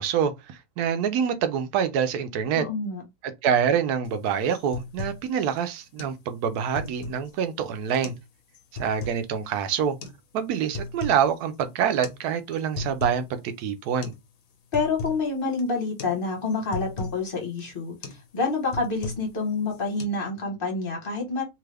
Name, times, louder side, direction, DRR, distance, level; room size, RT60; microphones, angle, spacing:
voice 1, 0.0-2.6 3.2-8.1 8.8-10.0 10.3-14.1, right 8 dB, 85° right, 1.1 m, -26 dB
voice 2, 2.5-3.0 14.7-21.4, left 3 dB, 40° left, 1.2 m, -28 dB
sound 1, 4.0-4.2 4.5-5.2 5.6-5.7 6.0-6.2 6.5-7.3 7.9-8.3 8.5-9.2 10.0-10.2 10.5-11.3 11.5-11.6 12.0-12.2 12.5-13.3 13.6-13.7 14.0-14.2 14.5-15.2 15.6-15.7 16.0-16.2 16.5-17.2 17.6-17.7 18.0-18.3 18.5-19.3 19.7-20.0, left 3 dB, 70° left, 1.1 m, -36 dB
2.9 x 2.4 x 3.3 m
omnidirectional pair, 1.6 m